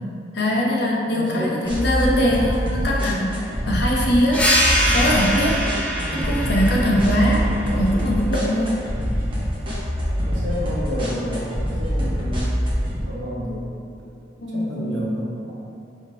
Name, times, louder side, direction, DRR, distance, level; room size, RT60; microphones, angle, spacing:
voice 1, 0.3-4.4 4.8-5.6 6.1-8.7 14.4-15.1, equal, 60° left, -3 dB, 0.7 m, -22 dB
voice 2, 1.1-1.5 6.0-6.2 6.9-7.2 10.2-12.5 12.9-13.7 14.5-15.3, equal, 80° right, -5 dB, 1.0 m, -30 dB
sound 1, 1.7-13.0, equal, 25° right, 0.9 m, -25 dB
sound 2, 4.3-9.5, equal, 5° left, 0.4 m, -24 dB
5.1 x 3.6 x 2.7 m, 2.6 s
head